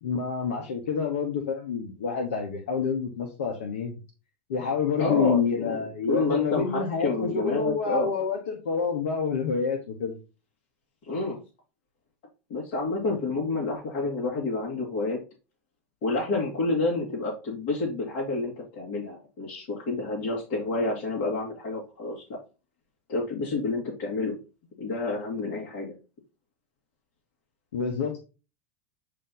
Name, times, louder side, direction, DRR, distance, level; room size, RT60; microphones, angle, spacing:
voice 1, 0.0-4.0 4.5-10.1 27.7-28.2, left 6 dB, 85° left, 3 dB, 1.2 m, -28 dB
voice 2, 5.0-5.8 6.1-8.1 11.1-11.4 12.5-15.2 16.0-22.4 23.1-24.4 24.8-25.9, left 3 dB, 60° left, -3 dB, 2.2 m, -29 dB
8.2 x 2.9 x 3.9 m, 0.32 s
hypercardioid pair, 110°, 7 cm